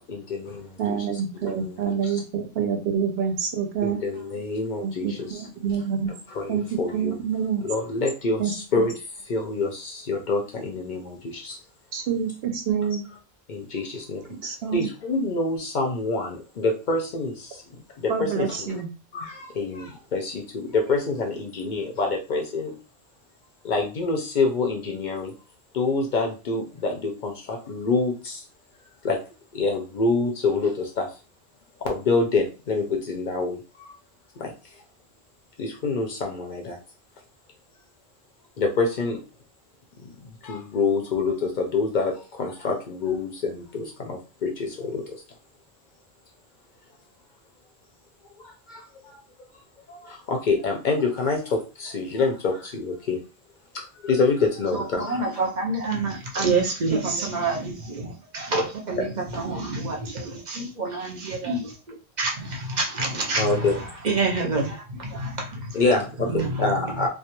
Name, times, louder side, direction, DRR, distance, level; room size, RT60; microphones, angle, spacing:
voice 1, 0.1-1.0 1.4-2.2 3.8-5.4 6.3-7.2 7.6-8.9 9.3-11.5 13.5-14.2 14.7-17.3 18.0-18.8 19.1-22.7 23.6-25.3 25.7-28.4 29.0-29.2 29.5-31.1 31.8-33.6 34.4-34.5 35.6-36.7 38.6-39.2 40.4-42.1 42.4-45.0 48.7-48.8 49.9-50.0 50.3-53.2 54.0-55.2 59.0-59.1 63.4-63.8 65.7-66.3 66.6-67.1, left 3 dB, 55° left, 0.6 m, -26 dB
voice 2, 0.8-4.0 4.8-6.1 6.5-7.6 8.4-8.9 11.9-13.1 14.3-14.9 18.1-18.9, right 7 dB, 75° right, 0.8 m, -27 dB
voice 3, 54.7-65.9 66.2-67.0, right 3 dB, 50° right, 0.7 m, -28 dB
2.3 x 2.2 x 2.9 m
omnidirectional pair, 1.1 m